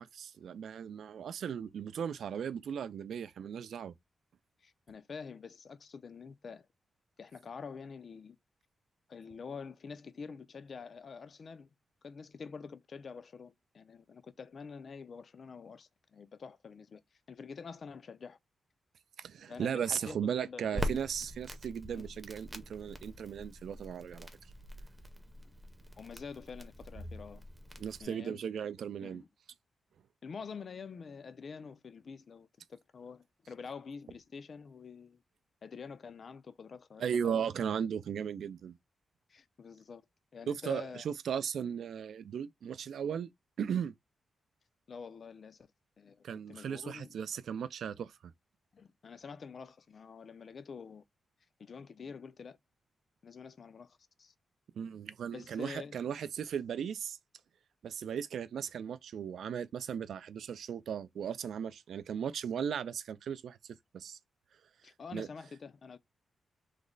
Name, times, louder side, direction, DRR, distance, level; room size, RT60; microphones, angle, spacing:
voice 1, 0.0-3.9 19.2-24.3 27.8-29.2 37.0-38.8 40.5-43.3 43.6-43.9 46.2-48.1 54.8-57.2 57.8-64.2 65.1-65.3, right 8 dB, 75° right, 0.3 m, -37 dB
voice 2, 4.6-6.7 7.2-8.4 9.1-11.7 12.0-17.0 17.3-18.4 19.5-20.9 21.9-22.1 26.0-27.4 28.0-28.4 29.0-29.3 30.2-35.2 35.6-37.5 39.3-40.0 40.3-41.1 44.9-45.7 46.0-47.2 48.7-51.0 51.6-52.6 53.2-54.3 55.3-56.0 64.8-66.0, left 5 dB, 45° left, 0.4 m, -47 dB
Crackle, 20.7-28.0, equal, 10° right, 0.6 m, -43 dB
3.2 x 2.0 x 3.7 m
wide cardioid pair, 145°, 0 cm